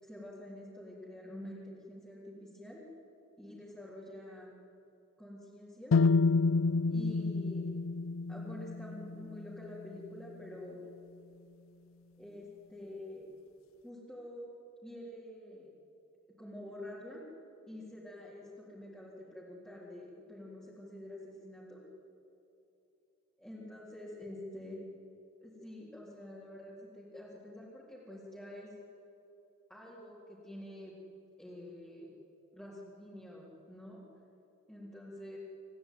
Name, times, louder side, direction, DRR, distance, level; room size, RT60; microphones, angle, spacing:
voice 1, 0.0-2.8 3.4-4.5 5.2-6.0 6.9-7.7 8.3-10.8 12.2-13.3 13.8-14.5 14.8-15.7 16.4-17.2 17.7-21.8 23.4-24.8 25.4-28.7 29.7-30.9 31.4-32.1 32.5-34.0 34.7-35.4, left 1 dB, 5° left, -8 dB, 3.9 m, -47 dB
sound 1, 5.9-9.9, left 4 dB, 75° left, 0.5 m, -29 dB
27.5 x 14.5 x 9.4 m, 2.8 s
head